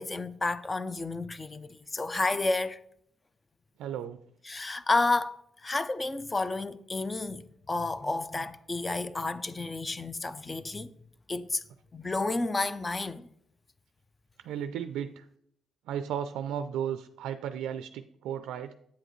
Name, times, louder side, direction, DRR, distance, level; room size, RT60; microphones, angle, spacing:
voice 1, 0.0-2.8 4.5-10.9 11.3-11.6 11.9-13.3, left 3 dB, 25° left, 0.5 m, -31 dB
voice 2, 3.8-4.2 14.4-15.3 15.9-18.7, right 9 dB, 85° right, 0.3 m, -34 dB
8.4 x 7.7 x 3.1 m
cardioid pair, 90°, 0 cm